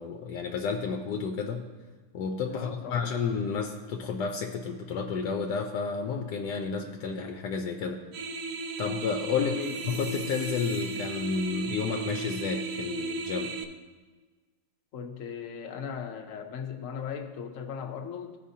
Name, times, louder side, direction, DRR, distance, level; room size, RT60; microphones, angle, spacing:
voice 1, 0.0-1.7 2.1-8.0 8.8-9.6 9.9-13.6, left 5 dB, 85° left, 3 dB, 1.3 m, -31 dB
voice 2, 2.5-3.1 9.4-9.8 14.9-18.4, left 7 dB, 60° left, 4 dB, 1.0 m, -38 dB
sound 1, 8.1-13.6, right 4 dB, 65° right, 0.9 m, -35 dB
Chime, 9.6-11.6, left 2 dB, 25° left, 1.0 m, -48 dB
14.5 x 5.0 x 2.7 m, 1.3 s
omnidirectional pair, 1.8 m